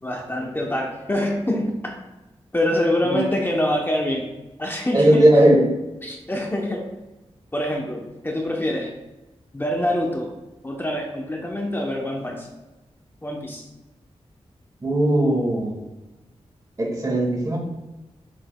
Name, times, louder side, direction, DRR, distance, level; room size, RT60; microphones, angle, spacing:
voice 1, 0.0-2.0 2.5-4.3 4.6-5.3 6.0-6.9 7.5-9.0 9.5-10.3 10.6-12.5 13.2-13.6, left 1 dB, 20° left, 0 dB, 0.8 m, -25 dB
voice 2, 4.9-5.8 14.8-15.8 16.8-17.6, right 1 dB, 30° right, 0 dB, 1.8 m, -18 dB
7.4 x 6.3 x 2.3 m, 1.1 s
wide cardioid pair, 80°, 12 cm